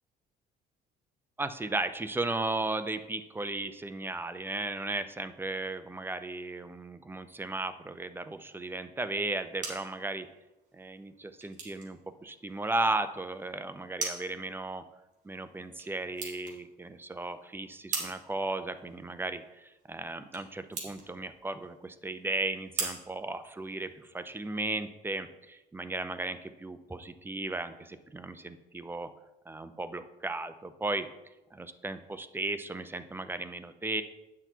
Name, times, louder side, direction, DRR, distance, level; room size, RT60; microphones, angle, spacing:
voice 1, 1.4-10.3 10.7-14.8 15.2-29.1 29.5-31.1 31.5-34.0, right 2 dB, 15° right, 11 dB, 0.6 m, -35 dB
pen click, 9.2-24.1, right 4 dB, 45° right, 2.6 m, -43 dB
9.4 x 6.1 x 4.5 m, 0.99 s
cardioid pair, 110°, 17 cm